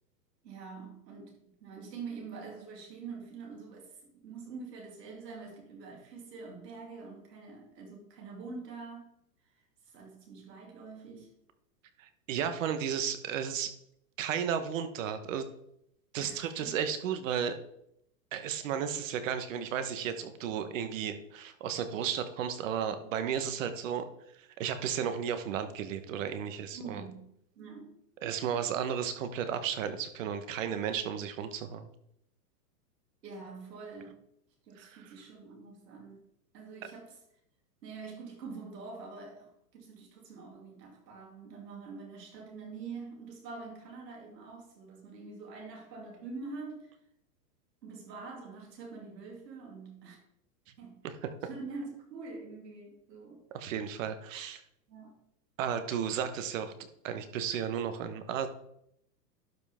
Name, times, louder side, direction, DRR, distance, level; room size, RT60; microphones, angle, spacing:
voice 1, 0.4-9.1 9.9-11.3 16.2-16.8 26.7-27.3 27.6-28.0 33.2-34.2 34.6-36.2 36.5-37.2 37.8-46.9 47.8-50.2 50.8-51.0 51.4-53.4 54.9-55.2, right 4 dB, 85° right, 2.9 m, -45 dB
voice 2, 12.0-13.7 14.2-15.5 16.1-17.5 18.3-24.1 24.3-27.0 28.2-31.9 34.8-35.0 51.0-51.1 53.5-54.6 55.6-56.7 57.0-58.5, right 8 dB, 50° right, 1.2 m, -34 dB
12.0 x 5.6 x 3.6 m
supercardioid pair, 155°, 48 cm